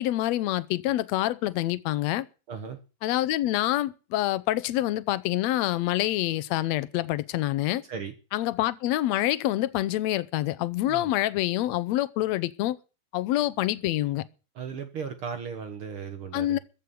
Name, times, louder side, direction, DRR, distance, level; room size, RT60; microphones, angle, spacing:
voice 1, 0.0-2.3 3.0-7.8 8.3-12.8 13.1-14.2 16.3-16.6, left 15 dB, 75° left, 2.0 m, -26 dB
voice 2, 2.5-2.8 7.9-8.1 10.9-11.1 14.6-16.6, right 6 dB, 55° right, 2.1 m, -36 dB
14.5 x 6.6 x 9.4 m
omnidirectional pair, 3.3 m